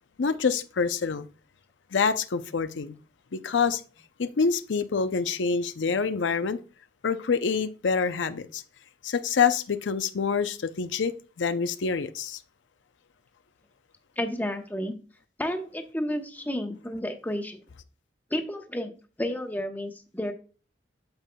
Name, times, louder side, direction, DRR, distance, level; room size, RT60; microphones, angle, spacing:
voice 1, 0.2-1.3 1.9-2.9 3.4-3.8 4.2-6.6 7.0-8.6 9.0-12.4, left 5 dB, 90° left, 0.6 m, -26 dB
voice 2, 14.2-14.9 15.4-17.6 18.3-18.9 19.2-20.3, left 1 dB, 10° left, 0.9 m, -31 dB
8.8 x 7.3 x 2.3 m
head